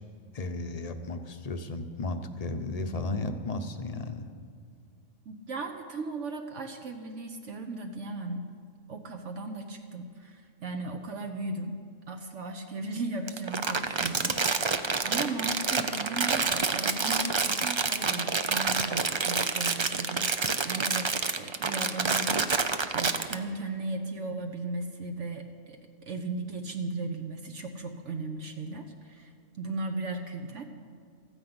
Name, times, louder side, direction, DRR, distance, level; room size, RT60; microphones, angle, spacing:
voice 1, 0.3-4.3, left 2 dB, 35° left, 8 dB, 0.8 m, -34 dB
voice 2, 5.3-8.4 8.9-11.8 12.1-21.1 21.3-25.8 26.1-29.3 29.6-30.6, right 3 dB, 65° right, 4 dB, 1.2 m, -36 dB
Crumpling crinkling, 13.3-23.3, right 4 dB, 45° right, 0.3 m, -28 dB
14.0 x 9.7 x 7.9 m, 2.1 s
omnidirectional pair, 1.4 m